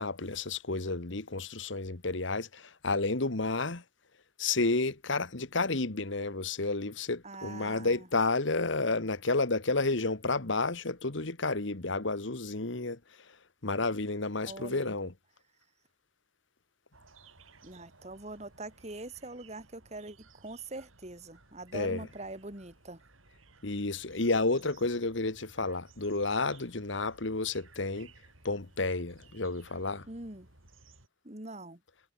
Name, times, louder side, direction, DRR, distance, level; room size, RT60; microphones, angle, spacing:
voice 1, 0.0-3.8 4.4-13.0 13.6-15.1 21.7-22.1 23.6-28.1 28.4-30.1, left 3 dB, 65° left, 1.6 m, -31 dB
voice 2, 7.2-8.1 14.4-14.9 17.6-23.0 30.1-30.5 31.2-31.8, right 2 dB, 35° right, 2.9 m, -43 dB
sound 1, 16.9-31.1, right 3 dB, 85° right, 7.3 m, -59 dB
head